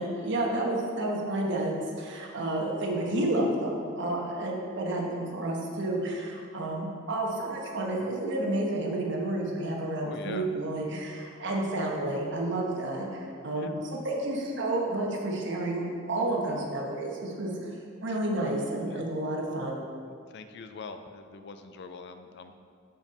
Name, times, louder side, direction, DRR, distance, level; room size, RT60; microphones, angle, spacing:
voice 1, 0.0-17.7 18.0-19.8, right 1 dB, 60° right, -1 dB, 1.2 m, -30 dB
voice 2, 10.0-10.5 13.5-13.8 18.1-18.2 18.9-19.1 20.3-22.5, left 4 dB, 60° left, 8 dB, 0.5 m, -43 dB
6.8 x 6.0 x 4.3 m, 2.2 s
head